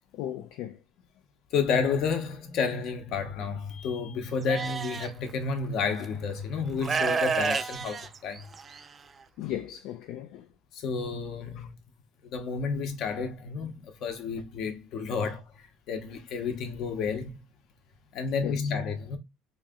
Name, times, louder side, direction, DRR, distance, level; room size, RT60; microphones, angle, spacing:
voice 1, 0.1-0.8 9.4-10.5 11.6-11.7 18.4-18.7, left 12 dB, 75° left, 0.4 m, -36 dB
voice 2, 1.5-8.4 10.7-11.7 12.2-17.3 18.1-19.2, left 5 dB, 60° left, 0.9 m, -31 dB
Livestock farm animals working animals, 4.5-5.1 6.0-6.1 6.8-8.8, right 5 dB, 25° right, 0.3 m, -29 dB
3.1 x 2.7 x 3.6 m
cardioid pair, 135°, 0 cm